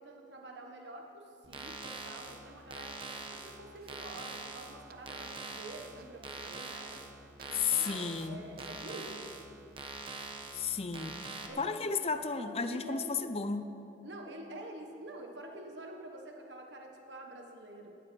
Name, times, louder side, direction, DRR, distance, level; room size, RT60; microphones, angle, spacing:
voice 1, 0.0-7.0 7.5-9.3 11.5-11.8 12.1-13.3 14.0-18.0, right 1 dB, 80° right, 2 dB, 1.5 m, -47 dB
sound 1, 1.4-11.5, right 3 dB, 30° right, 1.2 m, -44 dB
sound 2, 3.8-6.6 6.9-7.1 7.4-7.6 8.0-8.3 8.6-8.7, right 5 dB, 55° right, 0.6 m, -55 dB
voice 2, 7.5-8.4 10.5-13.6, left 5 dB, 35° left, 10 dB, 0.6 m, -33 dB
18.0 x 14.5 x 4.6 m, 2.8 s
head